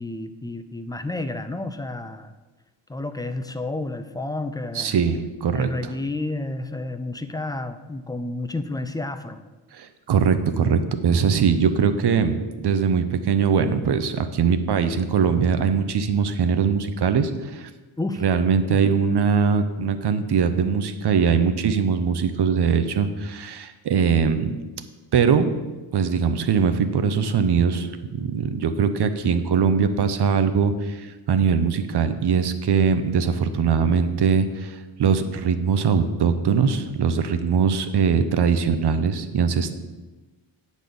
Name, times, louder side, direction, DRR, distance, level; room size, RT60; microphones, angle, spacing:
voice 1, 0.0-2.3 2.9-4.9 5.5-9.4 18.0-18.2 18.7-18.8, left 2 dB, 10° left, 9 dB, 0.4 m, -30 dB
voice 2, 4.7-5.9 9.7-17.7 18.2-24.5 25.1-25.5 25.9-39.7, right 6 dB, 60° right, 10 dB, 0.8 m, -21 dB
9.0 x 4.2 x 6.9 m, 1.2 s
cardioid pair, 110°, 46 cm